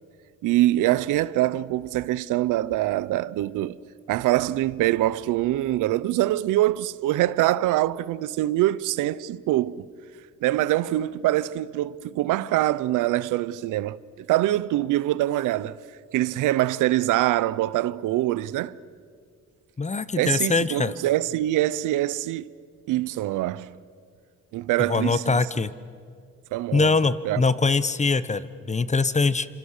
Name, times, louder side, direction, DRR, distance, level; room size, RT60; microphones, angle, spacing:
voice 1, 0.4-3.8 4.1-9.9 10.4-15.8 16.1-18.8 20.2-22.5 22.9-23.7 24.5-25.4 26.5-26.9 27.2-27.4, right 15 dB, 90° right, 0.7 m, -24 dB
voice 2, 19.8-20.9 24.8-25.7 26.7-29.5, left 4 dB, 25° left, 1.1 m, -23 dB
29.5 x 27.0 x 6.7 m
cardioid pair, 90°, 30 cm